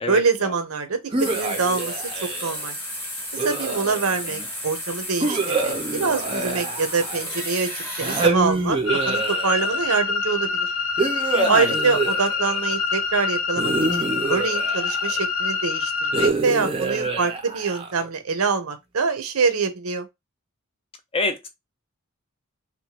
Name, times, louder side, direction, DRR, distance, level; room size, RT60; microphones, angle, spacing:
voice 1, 0.1-2.7 3.4-7.7 8.0-8.8 9.0-10.7 11.5-13.7 14.0-20.1, right 4 dB, 80° right, 0.7 m, -25 dB
sound 1, 1.1-2.6 3.4-4.3 5.2-7.4 8.0-9.9 11.0-12.7 13.6-15.2 16.1-18.1, right 3 dB, 25° right, 0.5 m, -26 dB
sound 2, 1.2-8.3, left 1 dB, 10° left, 0.8 m, -33 dB
sound 3, 8.9-16.3, left 4 dB, 70° left, 0.8 m, -25 dB
voice 2, 11.3-11.8 21.1-21.5, left 3 dB, 25° left, 0.4 m, -26 dB
2.9 x 2.2 x 2.9 m
head